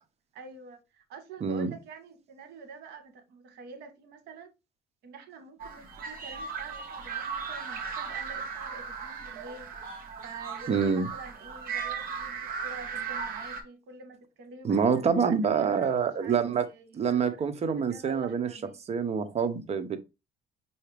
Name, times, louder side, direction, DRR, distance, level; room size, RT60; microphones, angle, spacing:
voice 1, 0.3-4.5 5.0-18.8, right 3 dB, 80° right, 1.1 m, -47 dB
sound 1, 5.6-13.6, right 6 dB, 60° right, 1.2 m, -37 dB
voice 2, 10.7-11.1 14.6-16.6 17.0-18.5 18.9-20.0, right 6 dB, 40° right, 0.8 m, -26 dB
5.6 x 2.8 x 3.3 m
cardioid pair, 110°, 17 cm